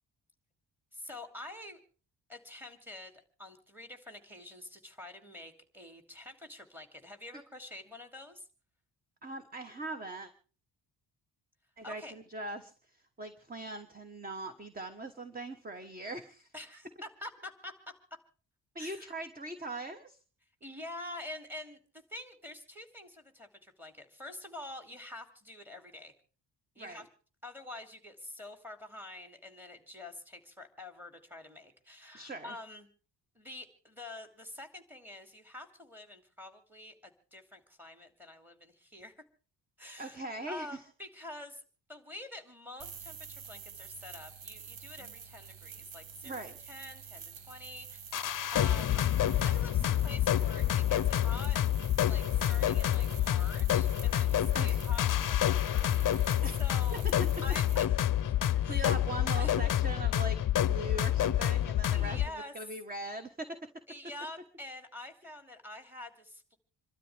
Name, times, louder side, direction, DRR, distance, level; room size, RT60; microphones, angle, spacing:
voice 1, 0.9-1.8 2.3-8.5 11.8-12.1 16.5-17.7 18.8-19.1 20.6-21.8 22.1-26.1 26.7-27.1 27.4-32.9 33.3-39.2 39.8-41.6 41.9-49.0 49.4-51.6 52.0-56.1 56.6-57.0 57.4-58.0 58.2-58.3 58.6-58.9 59.4-59.7 61.9-62.5 63.9-66.6, left 1 dB, 5° right, 7 dB, 2.7 m, -47 dB
voice 2, 9.2-10.3 11.8-12.7 13.2-16.5 18.7-20.2 26.8-27.0 32.1-32.5 40.0-40.8 45.0-45.1 46.2-46.5 54.5-54.8 56.4-56.6 58.7-62.2 62.5-63.6, right 2 dB, 20° right, 8 dB, 1.3 m, -41 dB
sound 1, 42.8-57.8, right 6 dB, 85° right, 1.5 m, -48 dB
sound 2, 48.1-62.3, left 11 dB, 45° left, 0.6 m, -28 dB
27.5 x 12.5 x 3.4 m, 0.38 s
cardioid pair, 130°, 44 cm